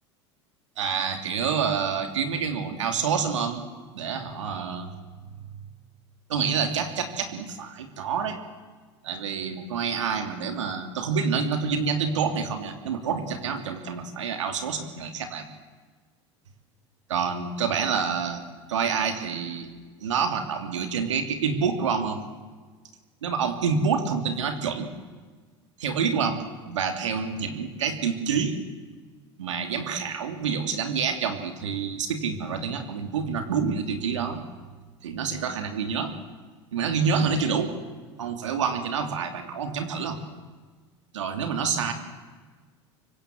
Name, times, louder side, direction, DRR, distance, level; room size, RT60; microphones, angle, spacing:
voice 1, 0.8-3.6 3.9-4.9 6.3-8.4 9.0-15.4 17.1-18.4 18.7-19.7 20.0-22.2 23.2-24.9 25.8-26.4 26.7-28.6 29.4-34.4 35.0-36.2 36.7-37.8 38.2-40.2 41.1-41.9, right 6 dB, 90° right, 6 dB, 3.0 m, -27 dB
24.5 x 24.5 x 7.9 m, 1.4 s
hypercardioid pair, 90°, 15 cm